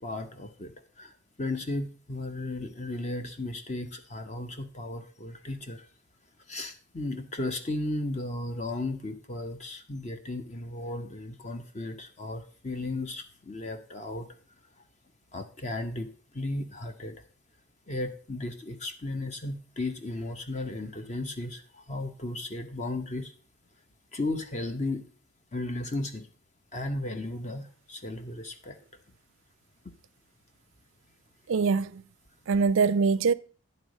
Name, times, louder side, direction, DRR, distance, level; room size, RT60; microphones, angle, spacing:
voice 1, 0.0-5.9 6.5-14.3 15.3-17.2 17.9-23.3 24.1-25.0 25.5-26.3 26.7-28.8, left 2 dB, 35° left, 0.8 m, -35 dB
voice 2, 31.5-32.0 32.5-33.3, right 5 dB, 65° right, 0.4 m, -23 dB
10.0 x 4.0 x 6.3 m
head